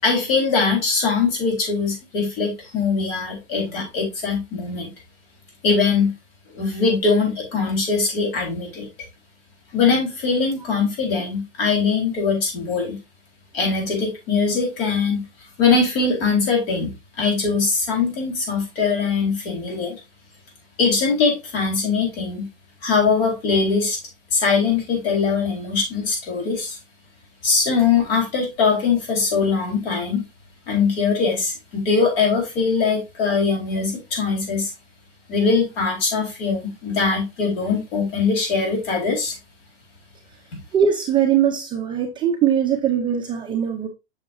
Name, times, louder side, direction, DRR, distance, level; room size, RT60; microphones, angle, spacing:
voice 1, 0.0-4.9 5.6-6.2 6.5-8.9 9.7-13.0 13.5-15.2 15.6-20.0 20.8-22.5 22.8-24.0 24.3-26.8 27.4-30.2 30.7-34.7 35.3-39.3, left 4 dB, 55° left, 4.3 m, -21 dB
voice 2, 40.7-43.9, right 8 dB, 15° right, 0.6 m, -21 dB
7.4 x 6.3 x 2.6 m
supercardioid pair, 155°, 35 cm